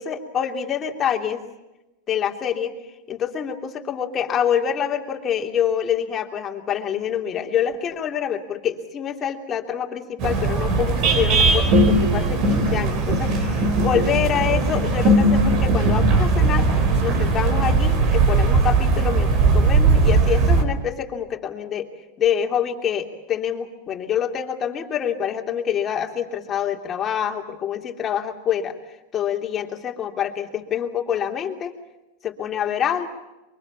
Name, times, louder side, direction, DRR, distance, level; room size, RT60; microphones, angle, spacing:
voice 1, 0.0-1.4 2.1-2.7 3.1-16.7 17.0-21.9 22.2-28.7 29.1-31.7 32.2-33.1, left 8 dB, 30° left, 3 dB, 3.0 m, -26 dB
sound 1, 10.2-20.6, right 3 dB, 50° right, 4.6 m, -18 dB
24.0 x 23.5 x 7.3 m, 1.0 s
hypercardioid pair, 115°, 0 cm